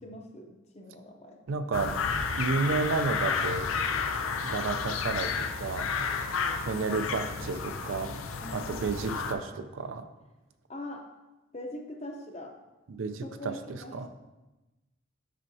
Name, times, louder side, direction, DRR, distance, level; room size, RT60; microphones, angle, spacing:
voice 1, 0.0-1.4 8.4-8.8 10.7-11.1 11.5-12.6 13.2-14.1, left 1 dB, 30° left, 3 dB, 0.6 m, -42 dB
voice 2, 1.5-2.0 2.3-3.7 4.4-6.1 6.6-8.2 8.5-10.1 12.9-14.1, right 4 dB, 80° right, 9 dB, 0.4 m, -32 dB
sound 1, 1.7-9.3, left 5 dB, 90° left, 0.5 m, -31 dB
7.5 x 5.4 x 2.7 m, 1.1 s
head